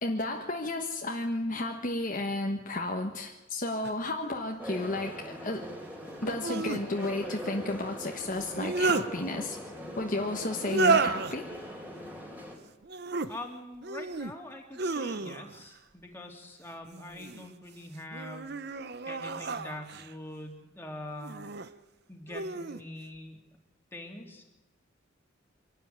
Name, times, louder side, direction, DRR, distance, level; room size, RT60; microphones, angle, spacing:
voice 1, 0.0-5.6 6.2-9.6 10.0-11.5, left 2 dB, 40° left, 2 dB, 1.4 m, -32 dB
sound 1, 3.8-3.9 6.2-6.8 8.4-9.1 10.6-11.4 12.8-13.3 13.8-14.3 14.7-15.6 16.9-17.5 18.1-20.1 21.2-21.7 22.3-22.8, right 4 dB, 55° right, 0.8 m, -31 dB
sound 2, 4.6-12.6, equal, 10° right, 3.9 m, -41 dB
voice 2, 13.3-18.5 18.8-21.5 22.1-23.4 23.9-24.4, left 1 dB, 10° left, 1 dB, 2.9 m, -44 dB
25.0 x 12.5 x 9.4 m, 1.0 s
head